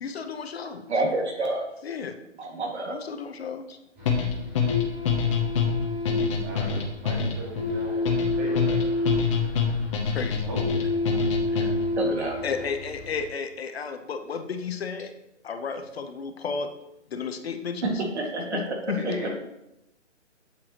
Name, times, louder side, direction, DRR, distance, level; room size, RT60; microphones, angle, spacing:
voice 1, 0.0-0.9 1.8-2.2 2.9-3.8 6.6-6.7 10.1-10.4 12.2-15.1 15.4-16.7 17.1-18.0 18.4-19.3, left 6 dB, 55° left, 7 dB, 0.9 m, -33 dB
voice 2, 0.9-1.7 2.4-2.9 11.1-11.7 12.0-12.4 17.8-18.6, right 2 dB, 60° right, 1 dB, 2.1 m, -29 dB
sound 1, 4.0-13.3, left 2 dB, 5° right, 0.5 m, -30 dB
sound 2, 4.1-12.0, left 6 dB, 25° left, 0.9 m, -26 dB
voice 3, 6.4-9.2 10.5-10.8 19.1-19.3, right 2 dB, 25° right, -2 dB, 2.0 m, -38 dB
8.9 x 7.0 x 3.0 m, 0.87 s
hypercardioid pair, 155°, 37 cm